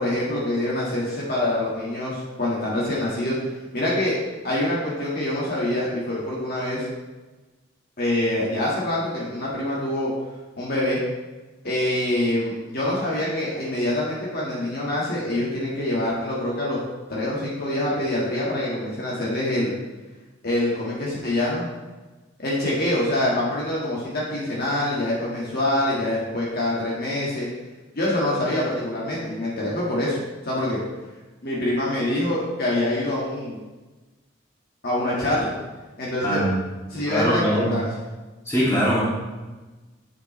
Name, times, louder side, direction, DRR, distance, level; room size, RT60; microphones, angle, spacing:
voice 1, 0.0-3.4 3.7-4.2 4.4-6.9 8.0-10.1 10.6-11.0 11.6-16.8 17.1-19.8 20.4-21.7 22.4-27.5 27.9-30.2 30.4-30.8 31.4-33.6 34.8-35.5 36.0-36.4 36.9-37.9, left 1 dB, 55° left, -6 dB, 1.7 m, -25 dB
voice 2, 36.2-36.5 37.0-37.7 38.5-39.0, equal, 15° left, -8 dB, 2.5 m, -22 dB
7.8 x 5.9 x 3.2 m, 1.2 s
head